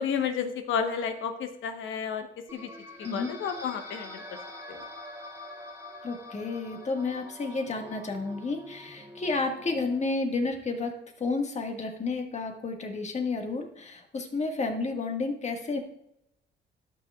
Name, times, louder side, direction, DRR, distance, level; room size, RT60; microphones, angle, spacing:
voice 1, 0.0-2.7 3.1-4.4 4.7-4.8, left 7 dB, 80° left, 7 dB, 1.0 m, -32 dB
sound 1, 2.5-10.1, left 1 dB, 10° right, 1.8 m, -45 dB
voice 2, 6.0-15.8, left 3 dB, 35° left, 3 dB, 1.6 m, -31 dB
12.5 x 6.1 x 2.3 m, 0.79 s
cardioid pair, 90°, 20 cm